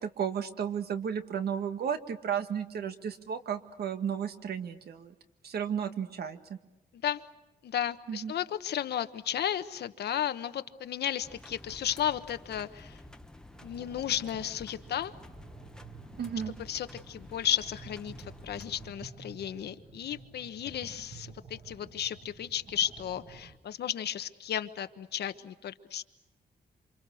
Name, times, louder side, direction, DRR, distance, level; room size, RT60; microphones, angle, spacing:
voice 1, 0.2-5.1 5.4-6.6 8.1-8.3 16.2-16.5, right 8 dB, 75° right, 8 dB, 1.9 m, -33 dB
voice 2, 7.6-13.0 13.6-15.1 16.5-18.1 18.4-26.0, left 10 dB, 85° left, 10 dB, 1.2 m, -34 dB
sound 1, 11.2-18.9, left 1 dB, 5° left, 1.1 m, -51 dB
sound 2, 13.5-23.6, right 3 dB, 40° right, 2.3 m, -50 dB
28.0 x 26.5 x 6.4 m, 0.99 s
wide cardioid pair, 165°, 17 cm